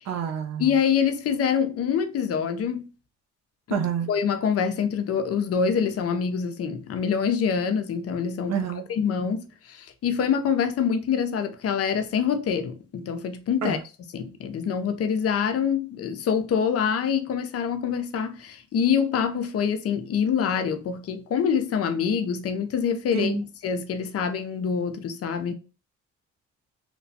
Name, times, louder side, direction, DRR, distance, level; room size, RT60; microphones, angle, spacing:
voice 1, 0.1-0.7 3.7-4.1 8.5-8.8 13.6-13.8 23.1-23.4, right 6 dB, 60° right, 0.6 m, -27 dB
voice 2, 0.6-2.9 3.7-3.8 4.1-8.6 8.9-13.8 14.1-23.3 23.6-25.5, left 7 dB, 50° left, 0.5 m, -25 dB
2.9 x 2.2 x 2.7 m
cardioid pair, 90°, 30 cm